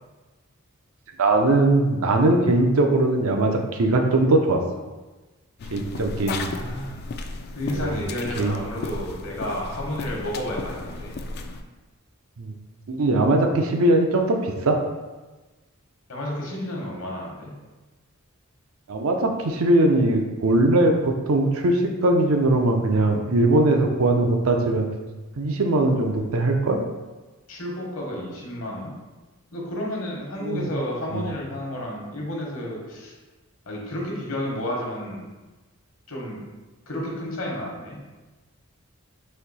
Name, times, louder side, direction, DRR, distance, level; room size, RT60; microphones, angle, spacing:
voice 1, 1.2-4.6 5.7-6.5 7.7-8.0 8.4-8.6 12.4-12.5 12.9-14.8 18.9-24.9 25.4-26.8 30.4-30.7 31.1-31.2, right 2 dB, 75° right, 3 dB, 0.6 m, -20 dB
sound 1, 5.6-11.6, left 3 dB, 50° left, 0.3 m, -34 dB
voice 2, 6.5-7.2 7.5-11.2 16.1-17.6 27.5-28.9 29.5-33.2 33.7-35.3 36.1-36.4 36.9-38.0, left 1 dB, 65° left, -2 dB, 1.1 m, -31 dB
4.3 x 2.7 x 4.1 m, 1.2 s
head